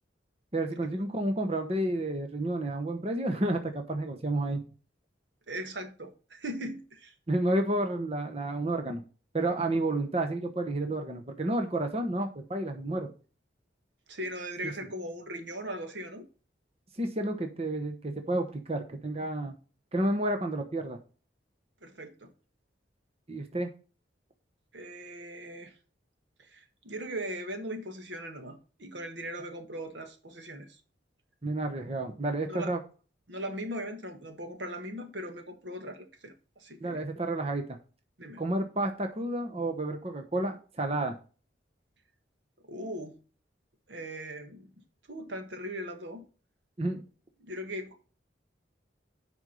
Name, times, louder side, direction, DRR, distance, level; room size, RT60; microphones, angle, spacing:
voice 1, 0.5-4.6 7.3-9.0 9.3-13.1 14.6-14.7 16.9-19.5 19.9-21.0 23.3-23.7 31.4-32.8 36.8-37.8 38.4-41.2 46.8-47.0, right 1 dB, 30° right, 1.0 m, -30 dB
voice 2, 5.5-7.1 14.1-16.3 21.8-22.3 24.7-25.7 26.4-30.8 32.5-32.7 33.3-37.0 38.2-38.4 42.7-43.2 43.9-44.7 45.1-46.3 47.4-48.0, right 1 dB, 75° right, 1.6 m, -39 dB
8.0 x 5.4 x 5.3 m
head